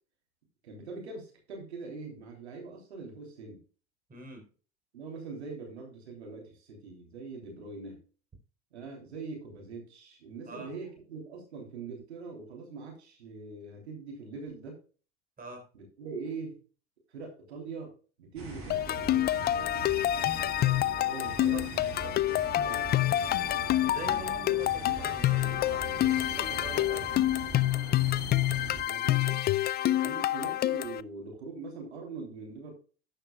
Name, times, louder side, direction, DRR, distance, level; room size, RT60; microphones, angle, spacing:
voice 1, 0.6-3.6 4.9-8.0 8.7-14.8 15.7-16.6 17.1-17.9 18.2-19.3 20.9-21.7 22.5-23.0 28.9-29.4 29.8-32.7, right 4 dB, 80° right, 1 dB, 3.2 m, -42 dB
voice 2, 4.1-4.5 10.5-10.7 15.4-15.6 21.3-21.7 22.0-22.2 23.9-27.1 30.0-30.2, right 3 dB, 25° right, 4 dB, 4.2 m, -44 dB
sound 1, 18.4-28.8, right 3 dB, 45° right, 5.6 m, -42 dB
sound 2, 18.7-31.0, left 14 dB, 30° left, 0.4 m, -27 dB
12.5 x 8.9 x 2.3 m, 0.37 s
hypercardioid pair, 70°, 32 cm